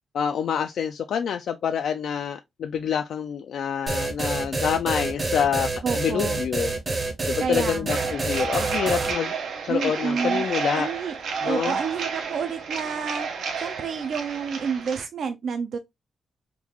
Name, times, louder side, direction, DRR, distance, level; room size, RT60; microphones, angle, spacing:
voice 1, 0.1-5.7 5.9-6.7 7.3-9.3 9.6-10.9 11.4-11.8, left 8 dB, 80° left, 0.3 m, -27 dB
sound 1, 3.9-9.1, right 3 dB, 25° right, 0.7 m, -27 dB
voice 2, 5.8-6.4 7.4-8.1 9.7-10.4 10.7-11.1 11.4-13.3 13.6-15.8, right 6 dB, 60° right, 0.4 m, -29 dB
sound 2, 7.9-15.1, right 5 dB, 85° right, 0.8 m, -31 dB
3.6 x 2.3 x 2.9 m
wide cardioid pair, 160°, 0 cm